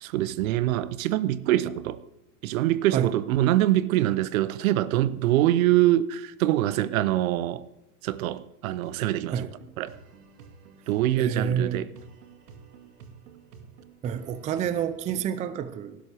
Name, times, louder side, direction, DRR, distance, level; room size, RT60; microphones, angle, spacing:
voice 1, 0.0-2.0 2.4-7.6 8.0-9.5 9.8-10.0 10.9-11.9, right 14 dB, 60° right, 0.8 m, -24 dB
sound 1, 8.7-15.1, right 5 dB, 75° right, 2.1 m, -50 dB
voice 2, 11.2-11.9 14.0-16.0, right 8 dB, 15° right, 0.5 m, -28 dB
18.5 x 11.0 x 3.4 m
hypercardioid pair, 115°, 47 cm